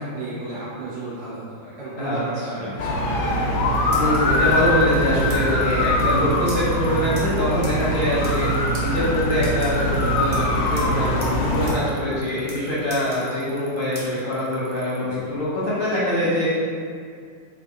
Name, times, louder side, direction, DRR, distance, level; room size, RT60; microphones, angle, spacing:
voice 1, 0.0-3.1 12.0-12.2 15.0-15.3, right 2 dB, 90° right, -9 dB, 1.6 m, -34 dB
sound 1, 2.8-11.7, left 1 dB, 75° left, 1.1 m, -22 dB
sound 2, 3.7-4.3 4.9-5.4 5.7-5.8 5.9-6.1 6.5-6.6 7.1-7.2 7.6-7.7 8.1-8.5 8.7-8.8 9.3-10.0 10.3-10.9 11.2-11.3 11.7-11.8 12.1-12.6 12.9-13.6 13.9-14.1 14.6-15.4, right 1 dB, 45° right, 0.5 m, -40 dB
voice 2, 4.0-16.6, left 1 dB, 50° left, -10 dB, 0.7 m, -24 dB
sound 3, 4.3-15.0, right 7 dB, 70° right, 1.1 m, -45 dB
4.0 x 2.4 x 3.6 m, 2.1 s
omnidirectional pair, 1.9 m